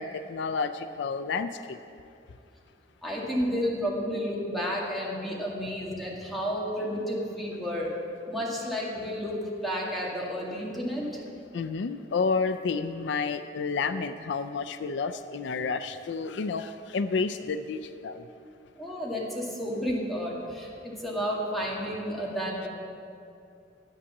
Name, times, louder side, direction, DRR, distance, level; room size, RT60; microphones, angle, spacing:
voice 1, 0.0-1.8 11.5-18.2, left 4 dB, 70° left, 10 dB, 0.4 m, -30 dB
voice 2, 3.0-7.9 8.3-11.2 18.8-22.7, equal, ahead, -5 dB, 2.1 m, -31 dB
11.5 x 8.3 x 7.1 m, 2.6 s
head